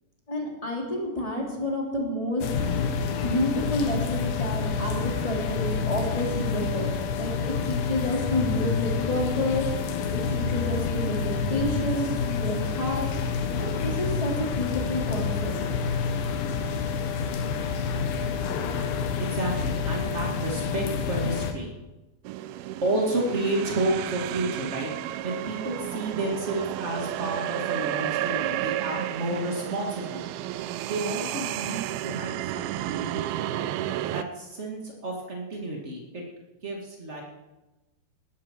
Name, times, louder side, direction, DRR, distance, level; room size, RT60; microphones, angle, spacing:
voice 1, 0.3-2.5 3.1-9.7 10.1-13.1 13.5-15.6, left 1 dB, 10° left, -1 dB, 2.3 m, -29 dB
sound 1, 2.4-21.5, left 5 dB, 70° left, 3.1 m, -28 dB
voice 2, 19.2-21.7 22.8-24.9 25.2-30.3 30.9-33.7 34.1-36.2 36.6-37.2, right 2 dB, 60° right, -1 dB, 0.7 m, -31 dB
sound 2, 22.3-34.2, right 13 dB, 85° right, 2.2 m, -32 dB
19.0 x 13.5 x 4.6 m, 1.0 s
omnidirectional pair, 5.1 m